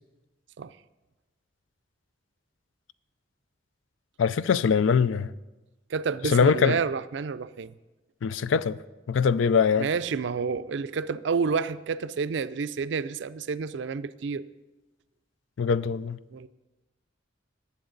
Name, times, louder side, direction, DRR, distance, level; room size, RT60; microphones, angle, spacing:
voice 1, 4.2-5.3 6.2-6.8 8.2-8.8 9.1-9.9 15.6-16.2, left 6 dB, 85° left, 0.4 m, -22 dB
voice 2, 5.9-7.7 9.8-14.5 16.3-16.5, right 5 dB, 70° right, 0.4 m, -29 dB
19.5 x 7.3 x 3.9 m
head